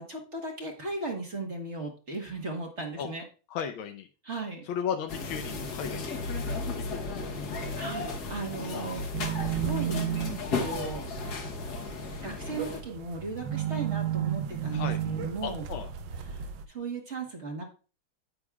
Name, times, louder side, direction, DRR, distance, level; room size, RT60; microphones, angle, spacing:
voice 1, 0.0-3.2 4.2-4.6 7.8-9.1 9.4-10.2 10.5-11.1 12.2-15.6 16.2-17.6, right 3 dB, 35° right, 1 dB, 1.5 m, -37 dB
voice 2, 3.5-4.1 4.7-6.0 6.8-7.5 14.7-15.0 15.4-15.9, left 8 dB, 80° left, 6 dB, 1.5 m, -35 dB
sound 1, 5.1-12.8, left 3 dB, 55° left, 1.5 m, -35 dB
sound 2, 9.1-16.6, right 10 dB, 70° right, 1.3 m, -33 dB
9.7 x 8.7 x 2.3 m, 0.35 s
omnidirectional pair, 2.3 m